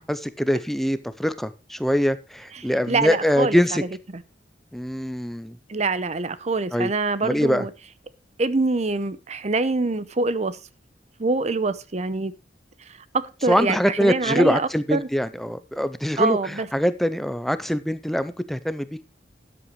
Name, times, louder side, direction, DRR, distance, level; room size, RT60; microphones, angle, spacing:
voice 1, 0.0-3.8 4.7-5.6 6.7-6.9 7.2-7.7 13.5-18.9, equal, ahead, 0.5 m, -23 dB
voice 2, 2.6-3.9 4.1-4.2 5.7-7.7 8.4-10.6 11.2-12.3 12.9-15.1 16.2-16.7, right 3 dB, 40° right, 0.7 m, -25 dB
13.0 x 10.0 x 3.1 m
head